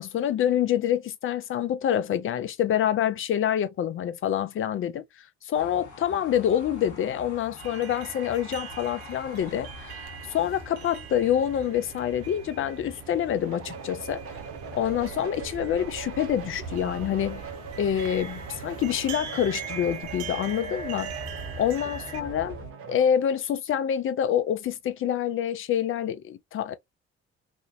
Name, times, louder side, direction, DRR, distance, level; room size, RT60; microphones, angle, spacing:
voice 1, 0.0-14.2 14.7-17.4 17.8-21.1 21.6-22.6 22.9-26.7, left 10 dB, 40° left, 0.5 m, -27 dB
sound 1, 5.5-22.7, right 1 dB, 85° left, 0.7 m, -45 dB
sound 2, 7.6-22.2, right 7 dB, 80° right, 0.5 m, -41 dB
sound 3, 13.4-23.1, right 6 dB, 45° right, 0.7 m, -42 dB
2.5 x 2.1 x 2.4 m
hypercardioid pair, 45°, 32 cm